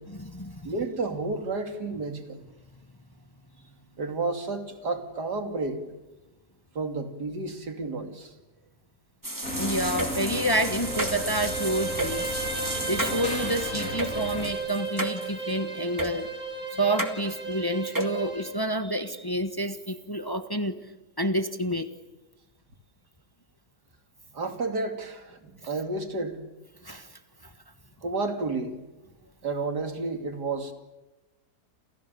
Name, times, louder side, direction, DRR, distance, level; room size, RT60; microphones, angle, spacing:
voice 1, 0.1-0.7 9.6-16.3 16.8-20.8 21.2-21.9 26.8-27.1 27.4-27.5, right 1 dB, 15° left, 9 dB, 1.3 m, -29 dB
voice 2, 0.6-2.4 4.0-5.8 6.7-8.3 24.3-26.4 28.0-28.8 29.4-30.7, right 3 dB, 85° right, 6 dB, 3.3 m, -31 dB
sound 1, 9.2-15.5 16.0-16.1 17.0-17.1 17.9-18.2, right 1 dB, 10° right, 2.3 m, -32 dB
sound 2, 9.4-14.5, left 1 dB, 60° left, 5.0 m, -36 dB
Bowed string instrument, 10.3-18.6, right 3 dB, 60° right, 4.8 m, -35 dB
29.0 x 29.0 x 7.0 m, 1.0 s
omnidirectional pair, 1.7 m